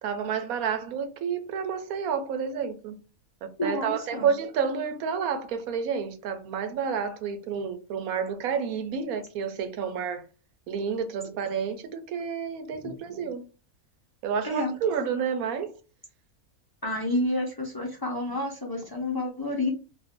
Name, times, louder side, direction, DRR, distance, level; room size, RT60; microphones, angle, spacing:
voice 1, 0.0-3.0 3.4-10.3 10.7-13.4 14.2-15.7, right 6 dB, 80° right, 1.1 m, -30 dB
voice 2, 3.6-4.3 14.4-14.7 16.8-19.7, left 1 dB, 30° left, 0.4 m, -29 dB
2.6 x 2.6 x 3.5 m
omnidirectional pair, 1.5 m